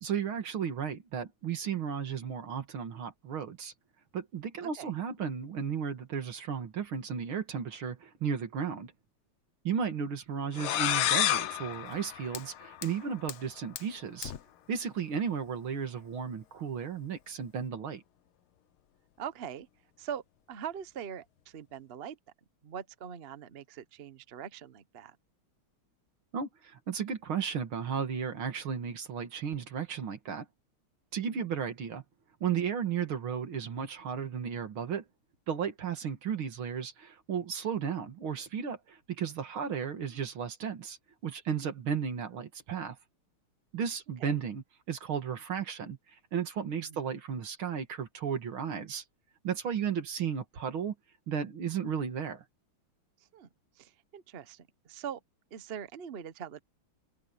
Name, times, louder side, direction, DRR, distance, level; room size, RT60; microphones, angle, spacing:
voice 1, 0.0-3.7 4.1-8.9 9.6-14.3 14.7-18.0 26.3-30.5 31.1-32.0 32.4-35.0 35.5-41.0 41.2-43.0 43.7-46.0 46.3-49.0 49.4-50.9 51.3-52.4, right 7 dB, 75° right, 2.8 m, -34 dB
voice 2, 4.6-4.9 19.2-19.7 20.0-22.2 22.6-25.2 31.3-31.5 44.2-44.4 46.9-47.0 53.3-53.5 53.7-55.2 55.5-56.6, right 8 dB, 50° right, 0.7 m, -42 dB
sound 1, 10.5-13.1, left 12 dB, 85° left, 1.8 m, -30 dB
Fire, 11.7-17.7, left 9 dB, 65° left, 0.6 m, -48 dB
open air
omnidirectional pair, 2.3 m